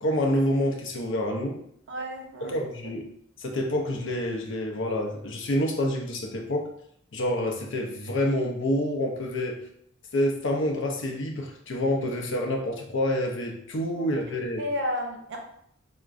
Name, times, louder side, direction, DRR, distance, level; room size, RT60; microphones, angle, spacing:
voice 1, 0.0-1.6 2.4-3.0 3.4-6.7 7.1-9.6 10.1-14.6, left 1 dB, 65° left, 2 dB, 0.6 m, -27 dB
voice 2, 1.9-2.5 2.8-3.0 14.0-14.1 14.6-15.4, left 1 dB, 60° right, 2 dB, 0.7 m, -32 dB
4.5 x 2.2 x 2.4 m, 0.68 s
head